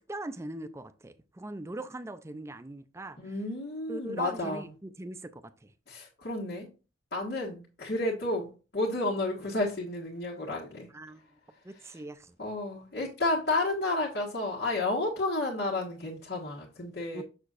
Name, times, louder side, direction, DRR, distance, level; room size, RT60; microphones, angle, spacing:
voice 1, 0.0-3.2 3.9-5.7 10.9-11.2 11.6-12.4 17.1-17.2, right 1 dB, 15° right, 0.4 m, -41 dB
voice 2, 3.2-4.7 5.9-6.7 7.1-10.9 11.8-12.0 12.4-17.2, left 2 dB, 70° left, 1.5 m, -31 dB
6.9 x 6.5 x 2.5 m
head